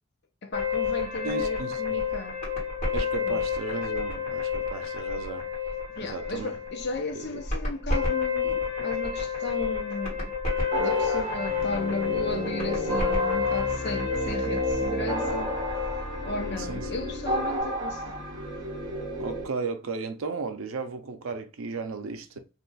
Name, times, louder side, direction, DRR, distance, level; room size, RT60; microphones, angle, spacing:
voice 1, 0.4-2.4 3.2-3.4 6.0-10.3 10.8-15.6 16.2-18.4, left 2 dB, 50° left, 0.5 m, -35 dB
sound 1, 0.5-17.6, left 6 dB, 35° left, 1.4 m, -30 dB
voice 2, 1.2-2.0 2.9-5.5 6.0-6.5 7.1-7.4 16.6-16.9 19.2-22.4, right 4 dB, 70° right, 0.5 m, -35 dB
sound 2, 10.7-19.4, right 1 dB, 20° right, 1.0 m, -31 dB
2.5 x 2.3 x 3.8 m
head